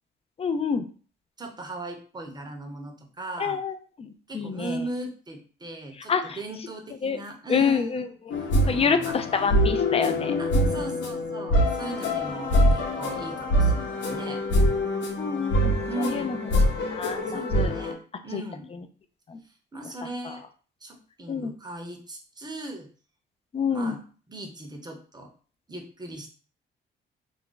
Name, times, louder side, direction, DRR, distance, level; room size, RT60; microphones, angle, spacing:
voice 1, 0.4-0.8 3.4-4.9 6.0-6.4 7.0-7.2 7.5-8.4 8.7-10.7 15.2-16.4 16.9-17.7 18.3-18.4 18.7-18.9 19.3-19.4 20.0-20.4 21.3-21.5 23.5-24.0, left 6 dB, 30° left, 8 dB, 0.4 m, -28 dB
voice 2, 1.4-3.6 4.3-8.0 8.6-9.1 10.4-14.4 15.9-16.3 17.3-18.0 18.2-18.7 19.7-20.4 20.8-22.9 23.7-24.0 24.3-25.3 25.7-26.3, right 1 dB, 20° right, 3 dB, 0.7 m, -37 dB
sound 1, 8.3-17.9, equal, 70° left, 0.9 m, -24 dB
2.5 x 2.1 x 3.8 m, 0.40 s
cardioid pair, 90°, 20 cm